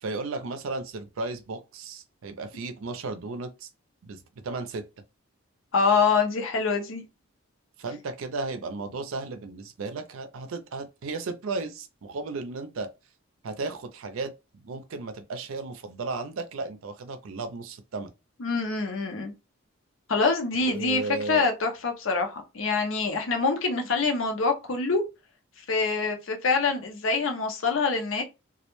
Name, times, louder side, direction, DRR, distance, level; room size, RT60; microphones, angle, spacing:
voice 1, 0.0-3.7 4.0-4.8 7.8-12.9 13.4-18.1 20.6-21.5, right 3 dB, 80° right, 0.5 m, -34 dB
voice 2, 5.7-7.0 18.4-19.3 20.1-25.0 25.7-28.2, left 4 dB, 70° left, 0.6 m, -25 dB
2.3 x 2.1 x 2.9 m
head